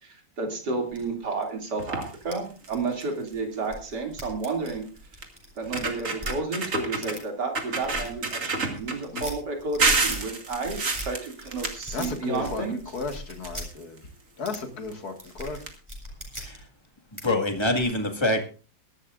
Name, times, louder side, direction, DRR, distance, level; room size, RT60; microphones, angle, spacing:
voice 1, 0.0-4.9 5.6-12.8, right 3 dB, 65° right, 3 dB, 3.4 m, -31 dB
sound 1, 0.9-1.7 2.1-6.3 7.0-7.2 7.7-10.2 10.5-11.1 11.4-12.5 12.8-13.7 14.4-14.6 14.8-16.6 17.2-17.3 17.5-17.9, equal, 15° right, 4.3 m, -40 dB
sound 2, 1.8-2.1 2.6-2.7 3.0-3.3 4.5-4.6 5.2-5.3 5.6-7.2 7.5-9.2 9.8-12.6 12.9-14.0 14.9-15.0 15.3-15.4 15.6-15.7, right 3 dB, 45° right, 2.4 m, -28 dB
voice 2, 11.9-12.6 12.9-14.0 14.4-15.6, left 4 dB, 55° left, 5 dB, 2.5 m, -34 dB
voice 3, 17.2-18.5, left 1 dB, 15° left, 4 dB, 1.9 m, -25 dB
22.5 x 11.5 x 2.6 m, 0.36 s
omnidirectional pair, 2.0 m